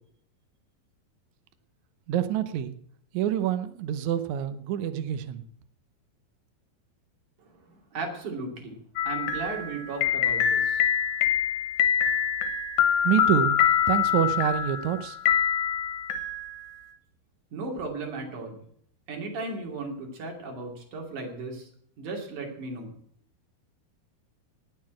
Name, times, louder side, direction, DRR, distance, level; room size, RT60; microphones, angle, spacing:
voice 1, 2.1-2.7 3.1-5.4 13.0-13.6 13.9-15.2, right 11 dB, 80° right, 10 dB, 1.6 m, -26 dB
voice 2, 7.4-8.8 9.0-10.9 17.5-18.7 19.1-21.7 22.0-22.9, right 3 dB, 55° right, 1 dB, 4.0 m, -36 dB
sound 1, 9.0-16.9, left 9 dB, 65° left, 2.8 m, -25 dB
19.0 x 7.1 x 7.5 m, 0.65 s
omnidirectional pair, 4.5 m